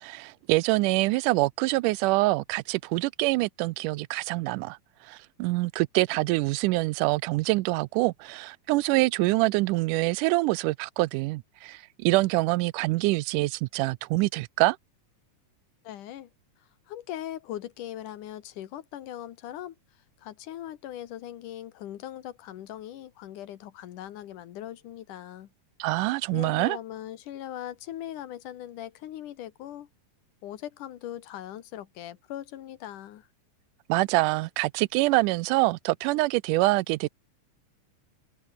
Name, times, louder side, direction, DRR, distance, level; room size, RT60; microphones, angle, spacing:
voice 1, 0.0-4.8 5.0-14.8 25.8-26.8 33.9-37.1, right 21 dB, 90° right, 2.1 m, -25 dB
voice 2, 15.8-16.3 16.9-19.8 20.2-25.5 26.3-29.9 30.4-33.3, left 12 dB, 80° left, 2.9 m, -40 dB
omnidirectional pair, 3.6 m